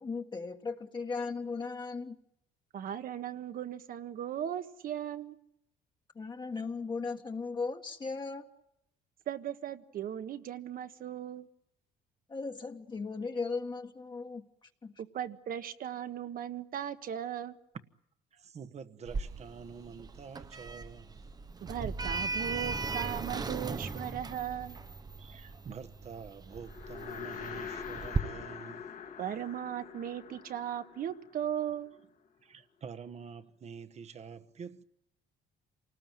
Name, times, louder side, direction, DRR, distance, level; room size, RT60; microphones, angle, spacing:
voice 1, 0.0-2.2 6.2-8.5 12.3-14.5 14.8-14.9, left 4 dB, 25° left, 1.6 m, -37 dB
voice 2, 2.7-5.4 9.3-11.5 15.0-17.6 21.6-24.8 29.2-31.9, right 10 dB, 55° right, 1.5 m, -37 dB
voice 3, 18.3-21.2 25.2-28.9 32.4-34.8, right 6 dB, 40° right, 1.3 m, -47 dB
Sliding door, 19.1-28.2, right 4 dB, 25° right, 0.9 m, -38 dB
sound 1, 26.6-32.0, left 7 dB, 50° left, 1.9 m, -44 dB
27.5 x 19.5 x 9.1 m
cardioid pair, 110°, 17 cm